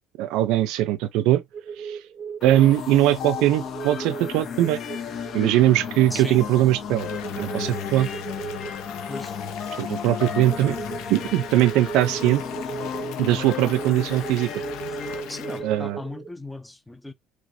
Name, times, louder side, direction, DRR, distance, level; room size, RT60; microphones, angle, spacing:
voice 1, 0.2-1.4 1.8-2.0 2.4-4.8 5.3-7.1 7.4-8.1 9.8-10.8 11.1-12.4 13.2-14.5 15.6-16.0, right 14 dB, 90° right, 0.4 m, -21 dB
sound 1, 1.5-9.8 10.5-16.3, right 6 dB, 45° right, 0.6 m, -38 dB
sound 2, 2.4-15.9, left 7 dB, 50° left, 0.9 m, -34 dB
Water tap faucet / Bathtub (filling or washing) / Fill (with liquid), 7.0-15.6, left 10 dB, 90° left, 0.7 m, -42 dB
voice 2, 15.3-17.1, left 2 dB, 10° left, 0.6 m, -36 dB
3.3 x 3.1 x 2.5 m
cardioid pair, 125°, 0 cm